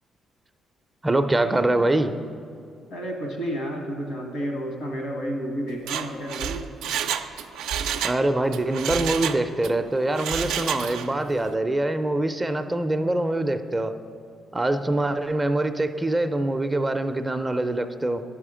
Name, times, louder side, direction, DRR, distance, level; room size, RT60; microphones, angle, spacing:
voice 1, 1.0-2.2 8.0-14.0 14.5-18.2, right 2 dB, 15° right, 8 dB, 0.4 m, -24 dB
voice 2, 2.9-6.6, equal, 85° left, 2 dB, 1.4 m, -31 dB
Mechanisms, 5.7-8.2 8.5-9.7 10.1-11.2 11.5-11.6, right 8 dB, 90° right, 0.3 m, -29 dB
10.5 x 5.6 x 4.9 m, 2.3 s
cardioid pair, 90°, 0 cm